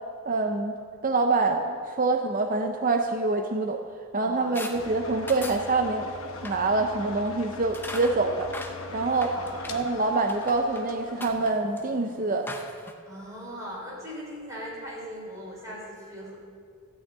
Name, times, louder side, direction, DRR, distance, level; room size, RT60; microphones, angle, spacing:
voice 1, 0.3-0.7 1.0-3.8 4.1-6.1 6.4-8.5 8.9-9.3 9.7-12.5, right 3 dB, 35° right, 5 dB, 0.6 m, -25 dB
voice 2, 4.2-5.0 9.1-9.7 13.1-16.3, equal, 15° right, -5 dB, 4.0 m, -40 dB
sound 1, 4.5-4.8 5.3-5.7 6.3-6.6 7.7-9.9 10.3-10.8 11.2-12.9, left 2 dB, 10° left, 0.6 m, -40 dB
sound 2, 4.7-11.6, left 3 dB, 65° left, 1.0 m, -41 dB
14.0 x 6.0 x 8.5 m, 2.1 s
head